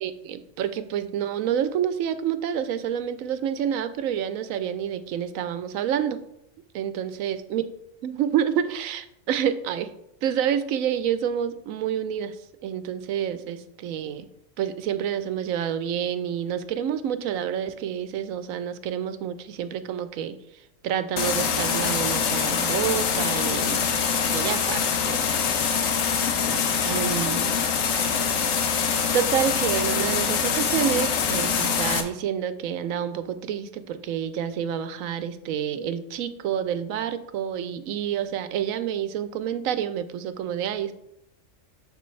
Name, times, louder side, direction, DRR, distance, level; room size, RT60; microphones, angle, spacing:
voice 1, 0.0-6.2 6.7-7.6 8.0-9.9 10.2-12.4 12.6-14.3 14.6-20.4 20.8-23.8 24.3-25.2 26.8-27.6 29.1-40.9, right 9 dB, 90° right, 12 dB, 1.0 m, -28 dB
sound 1, 21.2-32.0, left 6 dB, 80° left, 1.2 m, -24 dB
7.0 x 6.8 x 3.2 m, 0.81 s
omnidirectional pair, 1.4 m